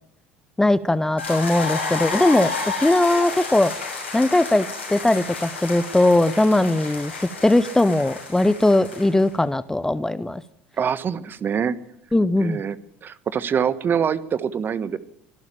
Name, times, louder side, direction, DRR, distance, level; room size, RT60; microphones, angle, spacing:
voice 1, 0.6-2.5 2.8-3.7 4.1-10.4 12.1-12.6, left 2 dB, 10° left, 16 dB, 0.8 m, -19 dB
sound 1, 1.2-9.3, left 4 dB, 90° left, 6.5 m, -31 dB
voice 2, 10.8-11.7 12.4-12.8 13.0-15.0, right 7 dB, 35° right, 16 dB, 1.2 m, -24 dB
24.5 x 12.0 x 8.9 m, 0.78 s
figure-of-eight pair, 70°, 6 cm